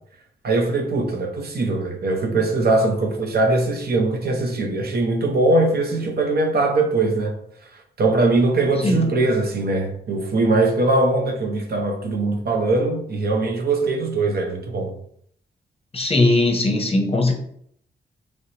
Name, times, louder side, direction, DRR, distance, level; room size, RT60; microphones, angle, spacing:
voice 1, 0.4-7.4 8.0-14.9, right 2 dB, 60° right, 0.6 m, -21 dB
voice 2, 15.9-17.3, left 2 dB, 30° left, 0.7 m, -19 dB
3.1 x 2.9 x 2.8 m
cardioid pair, 70°, 19 cm